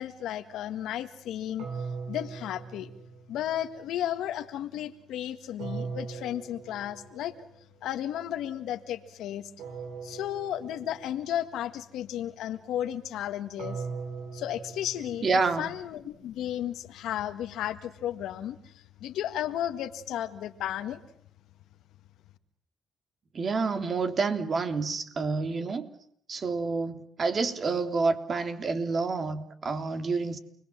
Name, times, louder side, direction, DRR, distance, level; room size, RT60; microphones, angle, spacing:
voice 1, 0.0-1.7 2.1-2.9 3.3-7.3 7.8-9.5 10.0-13.8 14.3-21.0, left 11 dB, 85° left, 1.8 m, -34 dB
sound 1, 1.6-3.6 5.6-7.4 9.6-11.4 13.6-15.8, right 5 dB, 90° right, 4.0 m, -40 dB
voice 2, 15.2-15.7 23.3-25.9 26.3-30.4, right 4 dB, 45° right, 3.3 m, -28 dB
29.5 x 21.0 x 7.5 m
cardioid pair, 90°, 0 cm